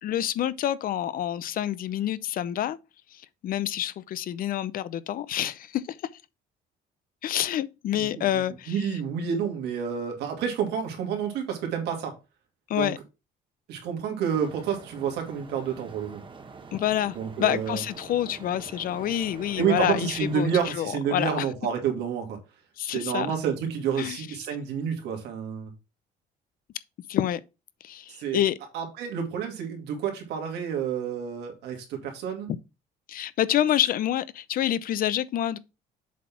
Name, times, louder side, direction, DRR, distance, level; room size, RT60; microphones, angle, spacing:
voice 1, 0.0-2.8 3.1-6.0 7.2-8.8 12.7-13.0 16.7-21.5 22.8-23.3 24.0-24.3 27.1-27.4 27.8-28.6 33.1-35.6, left 11 dB, 55° left, 0.6 m, -27 dB
voice 2, 8.7-12.1 12.7-12.9 13.7-16.2 17.1-17.8 19.6-22.4 22.9-25.7 28.2-28.4 28.7-32.5, right 7 dB, 85° right, 2.4 m, -29 dB
sound 1, 14.3-20.7, right 4 dB, 30° right, 1.2 m, -45 dB
7.4 x 4.2 x 4.3 m
cardioid pair, 110°, 17 cm